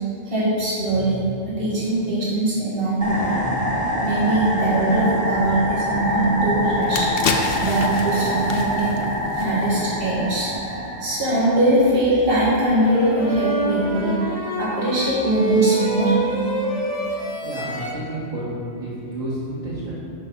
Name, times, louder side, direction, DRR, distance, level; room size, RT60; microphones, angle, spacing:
voice 1, 0.3-3.6 4.0-7.1 7.6-9.0 9.3-10.5 11.0-14.1 14.6-16.2, right 1 dB, 50° right, -9 dB, 2.2 m, -21 dB
sound 1, 3.0-11.8, left 1 dB, 5° left, 1.2 m, -25 dB
sound 2, 6.2-6.3 6.7-10.0 10.3-10.5, left 4 dB, 60° left, 0.8 m, -29 dB
sound 3, 12.6-17.9, right 2 dB, 35° left, 1.2 m, -26 dB
voice 2, 17.4-18.5 18.8-19.9, right 1 dB, 35° right, -12 dB, 2.1 m, -30 dB
6.2 x 5.6 x 6.3 m, 2.9 s
omnidirectional pair, 1.2 m